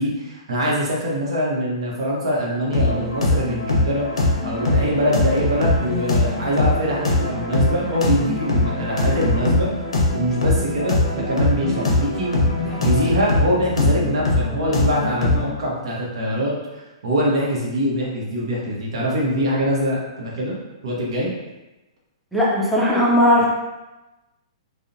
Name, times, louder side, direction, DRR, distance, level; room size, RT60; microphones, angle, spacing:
voice 1, 0.0-9.7 10.1-12.4 12.6-20.5 20.8-21.3, equal, 70° right, -3 dB, 0.8 m, -23 dB
sound 1, 2.7-15.5, left 2 dB, 85° left, 0.6 m, -21 dB
voice 2, 22.3-23.5, left 1 dB, ahead, -7 dB, 0.4 m, -17 dB
2.5 x 2.0 x 2.6 m, 1.1 s
hypercardioid pair, 135°, 3 cm